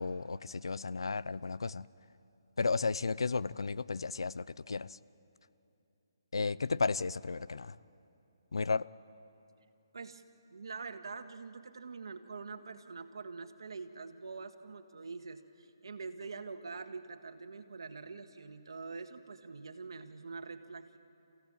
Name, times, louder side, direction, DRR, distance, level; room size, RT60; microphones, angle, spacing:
voice 1, 0.0-1.9 2.6-5.0 6.3-7.8 8.5-8.9, left 4 dB, 85° left, 19 dB, 0.6 m, -33 dB
voice 2, 10.5-21.0, right 4 dB, 75° right, 8 dB, 1.8 m, -45 dB
26.5 x 16.0 x 8.9 m, 2.8 s
hypercardioid pair, 155°, 2 cm